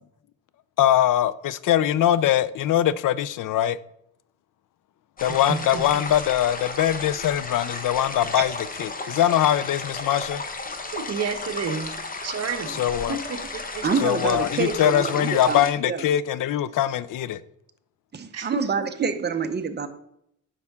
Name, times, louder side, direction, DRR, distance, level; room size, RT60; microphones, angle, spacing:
voice 1, 0.8-3.8 5.2-8.5 8.8-10.4 12.8-13.2 14.0-17.4, left 11 dB, 80° left, 0.5 m, -22 dB
sound 1, 5.2-15.7, left 3 dB, 30° left, 0.9 m, -34 dB
voice 2, 5.5-6.0 10.9-11.9 12.2-12.8 13.1-13.8 18.3-18.6, right 5 dB, 55° right, 1.0 m, -30 dB
voice 3, 13.8-16.0 18.1-19.9, right 5 dB, 35° right, 0.7 m, -27 dB
9.4 x 5.6 x 3.6 m
wide cardioid pair, 140°, 31 cm